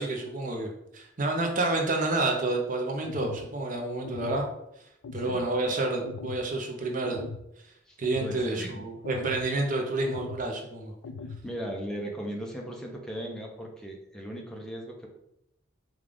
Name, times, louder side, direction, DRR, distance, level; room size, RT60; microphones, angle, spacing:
voice 1, 0.0-4.4 5.1-7.3 8.0-10.9, right 2 dB, 40° right, 2 dB, 0.6 m, -29 dB
sound 1, 3.0-3.5 4.0-4.4 5.0-5.4 6.0-6.4 7.0-7.4 8.0-8.4 9.0-9.5 10.0-10.4 11.0-11.4, left 4 dB, 90° left, 0.3 m, -40 dB
voice 2, 5.1-5.5 7.9-8.8 11.4-15.1, equal, 5° left, -1 dB, 0.6 m, -38 dB
5.0 x 2.4 x 3.6 m, 0.82 s
head